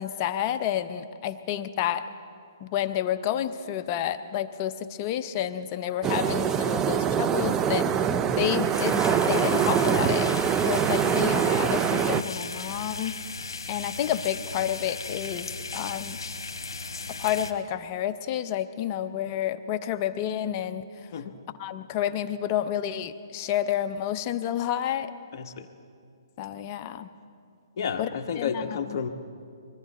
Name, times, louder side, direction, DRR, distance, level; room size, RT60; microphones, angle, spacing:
voice 1, 0.0-2.1 2.6-10.3 10.6-13.1 13.7-16.2 17.1-21.1 21.6-25.1 26.4-27.1 28.0-28.6 28.9-29.0, left 10 dB, 35° left, 10 dB, 0.6 m, -30 dB
sound 1, 6.0-12.2, right 8 dB, 15° right, 0.4 m, -24 dB
sound 2, 8.7-17.5, left 4 dB, 85° left, 1.2 m, -37 dB
voice 2, 25.3-25.7 27.8-29.1, left 6 dB, 50° left, 5 dB, 1.1 m, -31 dB
23.0 x 14.0 x 4.2 m, 2.4 s
hypercardioid pair, 145°, 2 cm